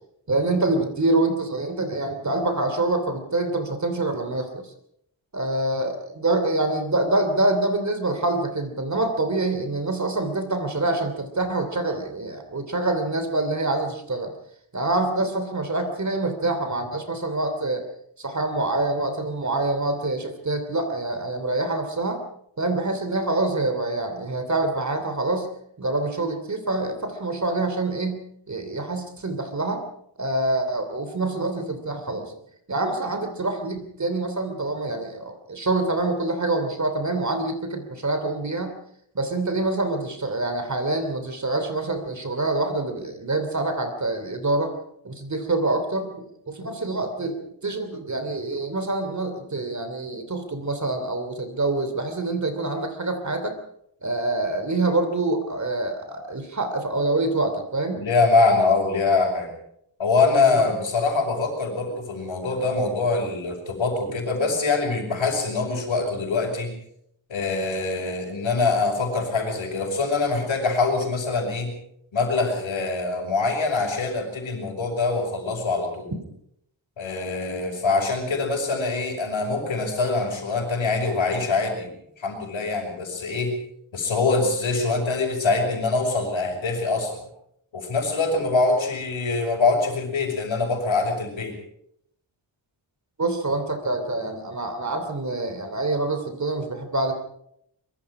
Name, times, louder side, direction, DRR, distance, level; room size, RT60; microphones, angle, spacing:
voice 1, 0.3-4.7 5.3-14.3 14.7-17.8 18.2-22.2 22.6-25.5 25.8-28.2 28.5-29.8 30.2-32.3 32.7-38.7 39.1-44.7 45.0-47.4 47.6-53.6 54.0-58.0 60.4-60.7 93.2-97.1, right 2 dB, 35° right, 8 dB, 2.9 m, -26 dB
voice 2, 58.0-59.5 60.0-66.7 67.3-71.7 72.1-76.1 77.0-83.5 83.9-87.3 87.7-91.6, left 3 dB, 75° left, -6 dB, 5.8 m, -24 dB
24.5 x 22.5 x 4.9 m, 0.72 s
wide cardioid pair, 155°, 47 cm